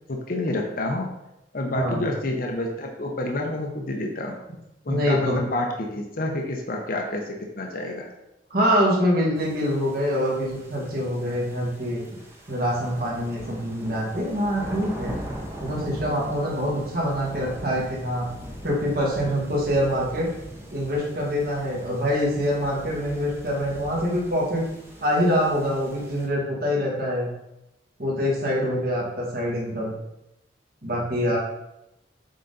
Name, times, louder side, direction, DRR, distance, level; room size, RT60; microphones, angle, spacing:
voice 1, 0.1-1.1 1.5-4.4 4.8-8.1, left 1 dB, 50° left, 1 dB, 0.8 m, -28 dB
voice 2, 1.7-2.1 4.9-5.4 8.5-12.0 12.5-15.1 15.6-18.3 18.6-20.3 20.7-24.6 25.0-27.3 28.0-30.0 30.8-31.4, equal, 55° right, -4 dB, 2.0 m, -25 dB
sound 1, 9.3-26.3, equal, 15° right, 1.0 m, -41 dB
7.6 x 4.1 x 4.0 m, 0.89 s
head